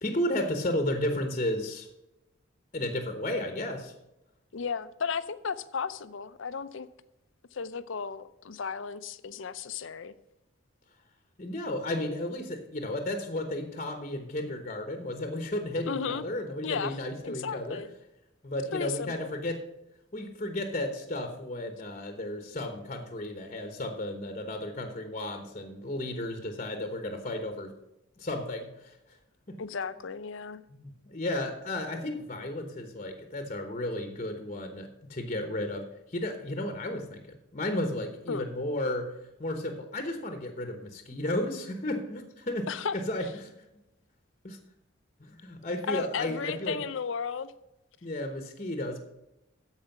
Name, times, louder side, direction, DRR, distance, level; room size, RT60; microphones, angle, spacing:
voice 1, 0.0-1.9 2.7-3.9 11.4-17.8 18.4-19.6 20.1-27.7 28.2-28.7 29.5-29.6 30.7-35.9 36.1-39.1 39.4-42.7 43.1-43.5 44.4-44.6 45.2-46.8 48.0-49.0, left 1 dB, 35° left, 1.0 m, -33 dB
voice 2, 4.5-6.9 7.5-10.1 15.9-16.2 16.6-17.0 17.2-17.9 18.7-19.3 29.6-30.6 38.3-38.5 42.7-43.3 45.9-47.5, left 6 dB, 70° left, 0.5 m, -34 dB
13.0 x 4.9 x 5.9 m
head